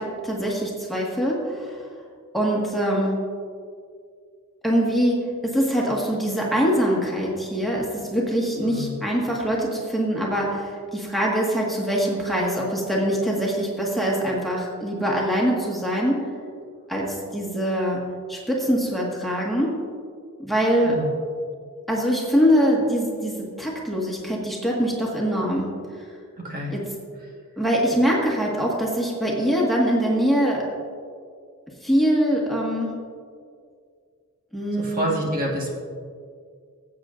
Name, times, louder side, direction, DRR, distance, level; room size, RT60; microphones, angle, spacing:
voice 1, 0.0-1.8 2.3-3.2 4.6-16.3 16.9-18.0 18.3-19.8 20.4-21.0 21.9-25.7 26.7-26.8 27.6-30.7 31.8-32.9 34.5-35.1, equal, ahead, -4 dB, 1.7 m, -23 dB
voice 2, 8.6-9.0 20.8-21.1 26.4-26.8 34.8-35.7, equal, 40° right, -2 dB, 1.6 m, -27 dB
19.0 x 8.4 x 2.6 m, 2.2 s
head